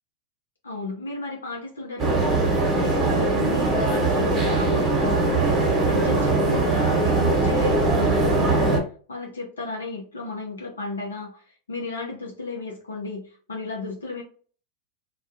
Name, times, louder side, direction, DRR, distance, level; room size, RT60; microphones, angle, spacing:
voice 1, 0.6-2.4 2.7-14.2, left 3 dB, 90° left, -1 dB, 0.6 m, -34 dB
sound 1, 2.0-8.8, right 2 dB, 30° right, 1.0 m, -21 dB
2.3 x 2.2 x 2.6 m, 0.42 s
hypercardioid pair, 95°, 0 cm